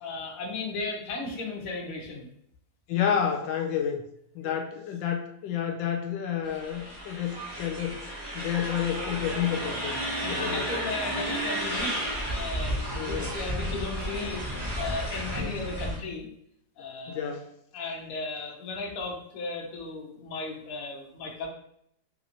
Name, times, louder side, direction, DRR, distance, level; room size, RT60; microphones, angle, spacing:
voice 1, 0.0-2.3 4.4-4.5 10.2-16.3 16.8-17.2 17.7-21.5, left 3 dB, 55° left, -1 dB, 1.1 m, -36 dB
voice 2, 2.9-4.0 4.3-8.0 8.3-10.0 10.3-10.8 12.9-13.3 15.4-15.5 17.1-17.5, left 8 dB, 85° left, 3 dB, 1.3 m, -30 dB
sound 1, 6.4-16.0, right 1 dB, 35° right, 0.3 m, -32 dB
3.4 x 3.1 x 2.6 m, 0.71 s
omnidirectional pair, 2.0 m